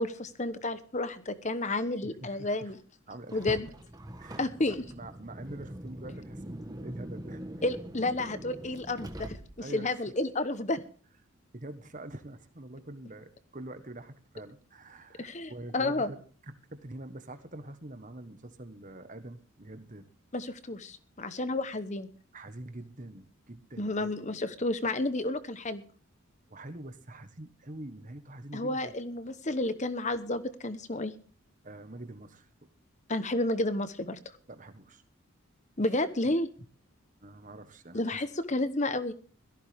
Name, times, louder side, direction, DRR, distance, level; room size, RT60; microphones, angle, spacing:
voice 1, 0.0-2.8 3.3-3.7 4.4-4.8 7.6-9.4 9.7-10.8 15.2-16.1 20.3-22.1 23.8-25.8 28.5-31.1 33.1-34.2 35.8-36.5 37.9-39.1, left 2 dB, 30° left, 12 dB, 1.0 m, -31 dB
voice 2, 2.0-2.7 3.1-3.6 4.2-4.5 4.9-7.4 9.6-10.0 11.5-20.1 22.3-24.1 26.5-28.9 31.6-32.7 34.5-35.0 37.2-38.2, right 1 dB, 35° right, 10 dB, 1.4 m, -45 dB
Car, 3.3-9.8, equal, 15° right, 1.4 m, -43 dB
17.5 x 14.5 x 3.5 m, 0.41 s
head